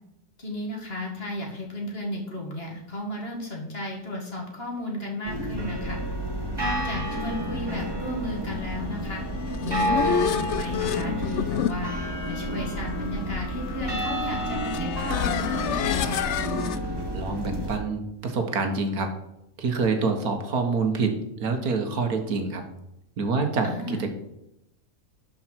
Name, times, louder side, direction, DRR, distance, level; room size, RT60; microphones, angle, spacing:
voice 1, 0.4-6.0 6.6-9.2 9.6-11.9 12.3-16.4 23.6-24.0, left 1 dB, 40° left, 0 dB, 2.1 m, -34 dB
sound 1, 5.2-17.8, equal, 15° right, 1.6 m, -30 dB
sound 2, 9.3-16.8, left 9 dB, 70° left, 0.6 m, -30 dB
voice 2, 17.1-19.1 19.6-22.6 23.2-24.1, right 4 dB, 70° right, 5 dB, 1.6 m, -26 dB
12.0 x 5.3 x 4.5 m, 0.86 s
omnidirectional pair, 1.7 m